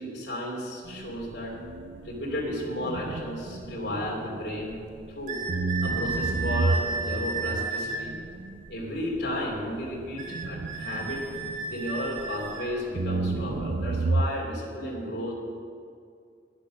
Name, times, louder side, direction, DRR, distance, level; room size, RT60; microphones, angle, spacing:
voice 1, 0.0-1.6 2.0-4.8 5.1-5.4 5.8-8.1 8.7-11.2 11.6-15.3, left 1 dB, 70° left, -3 dB, 3.0 m, -33 dB
sound 1, 0.8-5.1 5.5-12.5 12.9-14.3, right 3 dB, 85° right, 0.5 m, -32 dB
sound 2, 5.3-8.0 10.2-12.7, right 4 dB, 45° right, 1.5 m, -33 dB
10.5 x 10.5 x 6.4 m, 2.3 s
head